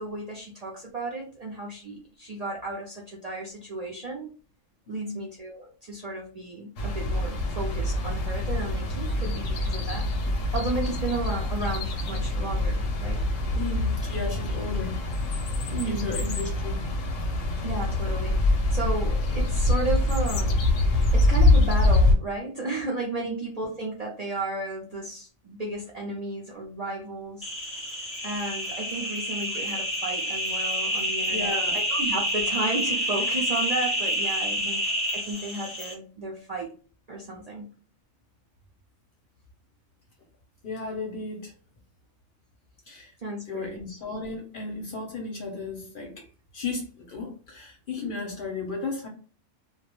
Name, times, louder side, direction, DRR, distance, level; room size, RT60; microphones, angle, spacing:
voice 1, 0.0-4.3 4.9-10.0 10.5-13.2 15.7-16.1 17.6-27.5 28.2-34.8 35.1-36.7 37.1-37.7 43.2-43.8, right 2 dB, 60° right, 0.4 m, -33 dB
voice 2, 4.9-5.2 13.5-15.0 15.7-16.8 31.3-31.8 34.6-34.7 40.6-41.5 42.9-43.1 43.5-46.3 46.5-49.1, left 3 dB, 55° left, 0.7 m, -34 dB
sound 1, 6.8-22.1, left 2 dB, 90° left, 1.0 m, -25 dB
sound 2, 27.4-35.9, equal, 15° left, 0.5 m, -28 dB
2.2 x 2.0 x 2.9 m
omnidirectional pair, 1.3 m